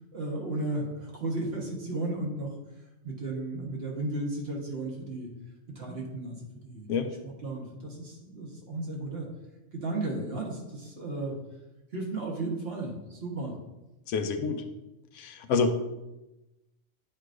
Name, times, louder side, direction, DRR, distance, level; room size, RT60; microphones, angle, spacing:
voice 1, 0.1-2.5 3.0-5.3 5.7-9.3 9.7-11.3 11.9-13.6 14.5-14.6, right 2 dB, 55° right, -2 dB, 1.4 m, -34 dB
voice 2, 14.1-14.6 15.1-15.9, left 4 dB, 75° left, 7 dB, 0.9 m, -28 dB
9.0 x 4.7 x 2.5 m, 0.99 s
omnidirectional pair, 1.3 m